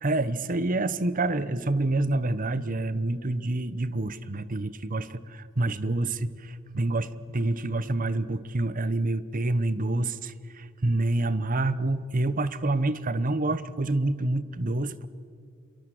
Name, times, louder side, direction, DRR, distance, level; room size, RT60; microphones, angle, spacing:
voice 1, 0.0-15.1, right 2 dB, 40° right, 15 dB, 1.0 m, -27 dB
28.0 x 23.0 x 7.8 m, 2.4 s
head